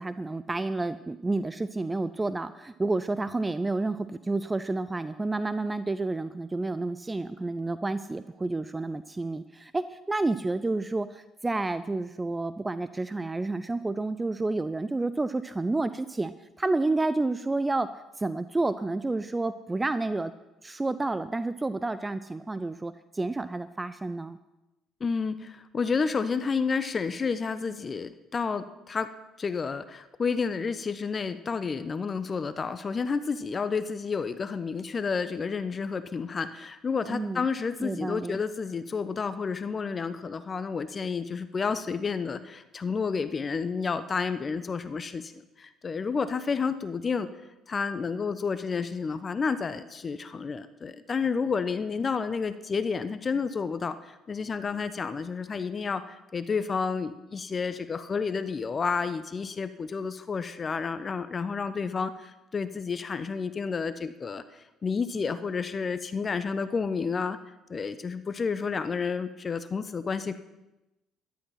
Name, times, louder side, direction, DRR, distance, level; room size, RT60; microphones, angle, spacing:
voice 1, 0.0-17.9 18.2-20.3 20.6-24.4 37.1-37.4 37.8-38.4, right 2 dB, 20° right, 13 dB, 0.6 m, -30 dB
voice 2, 25.0-29.1 29.4-47.3 47.7-67.4 67.7-70.4, left 5 dB, 35° left, 13 dB, 0.8 m, -30 dB
13.0 x 11.5 x 5.8 m, 0.98 s
hypercardioid pair, 55°, 0 cm